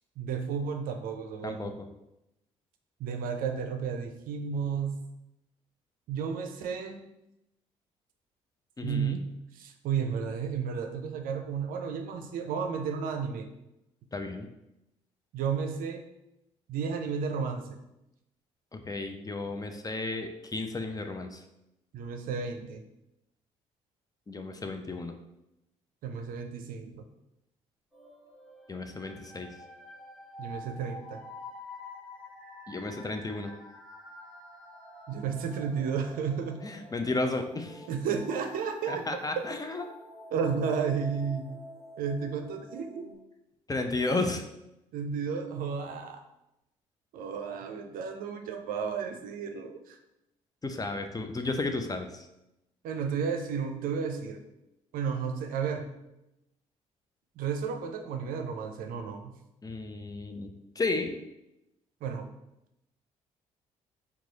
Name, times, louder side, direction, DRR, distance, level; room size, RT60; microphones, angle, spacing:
voice 1, 0.2-1.7 3.0-5.0 6.1-7.0 8.8-13.5 15.3-16.0 16.7-17.8 21.9-22.8 26.0-27.0 30.4-31.2 35.1-36.6 37.9-39.2 40.3-41.6 42.0-43.1 44.9-46.2 47.1-50.0 52.8-54.4 54.9-55.9 57.4-59.3 62.0-62.3, right 6 dB, 65° right, 6 dB, 0.5 m, -33 dB
voice 2, 1.4-1.9 8.8-9.2 14.1-14.5 18.7-21.4 24.3-25.2 28.7-29.5 32.7-33.5 36.6-37.9 38.9-39.8 43.7-44.4 50.6-52.3 59.6-61.2, left 3 dB, 25° left, 6 dB, 0.6 m, -33 dB
sound 1, 27.9-43.1, left 1 dB, ahead, 1.3 m, -47 dB
4.7 x 2.4 x 3.9 m, 0.89 s
hypercardioid pair, 50°, 16 cm